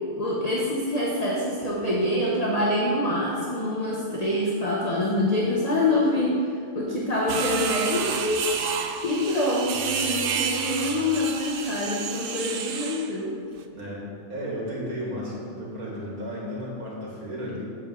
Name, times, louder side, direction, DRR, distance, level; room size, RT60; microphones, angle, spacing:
voice 1, 0.0-6.4 6.7-8.5 9.0-13.3, left 1 dB, 30° left, -4 dB, 0.9 m, -25 dB
sound 1, 7.3-13.1, right 6 dB, 65° right, 0.5 m, -30 dB
voice 2, 13.7-17.6, equal, 85° right, -5 dB, 2.5 m, -34 dB
9.0 x 4.4 x 7.4 m, 2.3 s
omnidirectional pair, 1.5 m